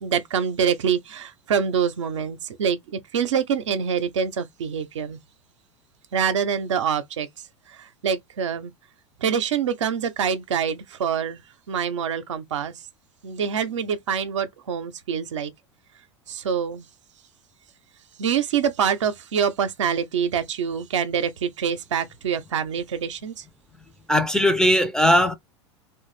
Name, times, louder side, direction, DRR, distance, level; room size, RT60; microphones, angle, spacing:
voice 1, 0.0-5.2 6.1-7.3 7.7-8.7 9.2-12.7 13.2-15.5 16.3-16.9 18.2-23.4, right 7 dB, 80° right, 0.5 m, -25 dB
voice 2, 24.1-25.3, equal, 5° left, 0.4 m, -19 dB
2.5 x 2.2 x 3.1 m
hypercardioid pair, 85°, 15 cm